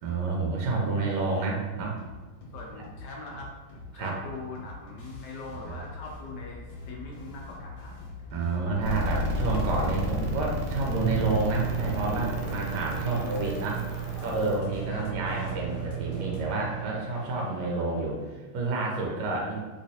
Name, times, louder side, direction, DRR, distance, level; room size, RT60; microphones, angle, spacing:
voice 1, 0.0-2.0 3.9-4.2 5.6-5.8 8.3-13.8 14.2-19.6, right 3 dB, 70° right, -1 dB, 1.1 m, -29 dB
sound 1, 1.8-16.4, left 2 dB, 60° left, 1.3 m, -44 dB
voice 2, 2.5-3.5 3.9-7.9 13.0-13.7 14.9-15.1, left 3 dB, 75° left, -1 dB, 1.0 m, -42 dB
sound 2, 8.8-14.6, equal, 90° right, 1.5 m, -32 dB
sound 3, 10.9-18.0, right 8 dB, 35° left, 0.8 m, -35 dB
3.1 x 3.0 x 2.7 m, 1.3 s
omnidirectional pair, 2.2 m